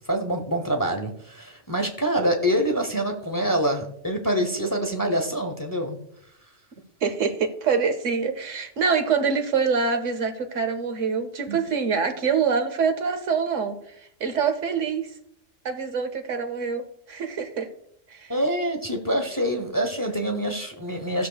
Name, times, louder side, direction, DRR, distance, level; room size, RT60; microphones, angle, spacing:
voice 1, 0.1-6.0 11.5-11.6 18.3-21.3, equal, 20° left, 3 dB, 0.8 m, -25 dB
voice 2, 7.0-15.1 15.6-17.7 18.1-18.3, right 5 dB, 75° right, 8 dB, 1.3 m, -25 dB
15.5 x 6.5 x 2.3 m, 0.70 s
omnidirectional pair, 1.3 m